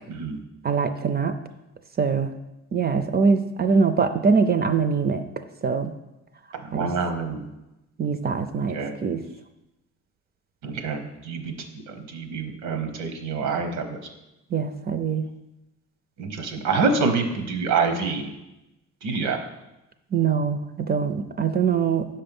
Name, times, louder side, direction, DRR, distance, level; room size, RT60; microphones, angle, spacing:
voice 1, 0.1-0.4 6.6-7.5 8.7-8.9 10.6-11.5 11.9-14.0 16.2-18.3 19.0-19.4, right 4 dB, 85° right, 6 dB, 1.0 m, -26 dB
voice 2, 0.6-1.3 2.0-2.3 2.7-5.2 5.6-5.9 6.7-6.9 8.0-9.2 14.5-15.2 20.1-22.2, right 5 dB, 35° right, 9 dB, 0.4 m, -23 dB
5.3 x 4.4 x 5.3 m, 0.95 s
cardioid pair, 90°, 30 cm